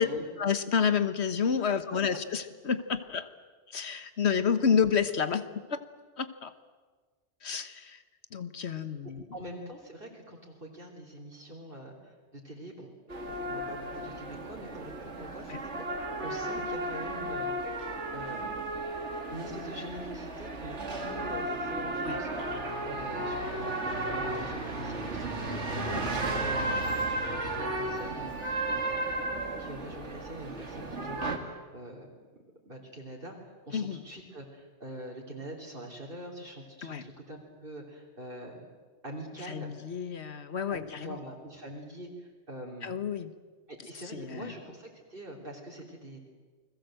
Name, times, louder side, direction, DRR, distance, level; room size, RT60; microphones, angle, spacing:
voice 1, 0.4-3.3 3.7-5.8 6.2-6.5 7.4-8.0 8.3-9.2 15.5-15.6 22.0-22.2 25.9-26.2 26.5-26.6 33.7-34.0 36.8-37.0 39.5-41.2 42.8-43.3 44.1-44.5, left 6 dB, 75° left, 11 dB, 1.5 m, -30 dB
voice 2, 9.0-12.9 13.2-17.6 18.1-18.6 19.3-22.5 22.8-23.8 24.1-29.3 29.6-32.1 32.7-38.6 39.0-39.7 40.7-43.0 43.7-46.3, right 1 dB, 55° right, -2 dB, 3.7 m, -44 dB
sound 1, 13.1-31.4, right 2 dB, 90° right, 2.7 m, -34 dB
29.5 x 21.5 x 7.8 m, 1.4 s
omnidirectional pair, 1.2 m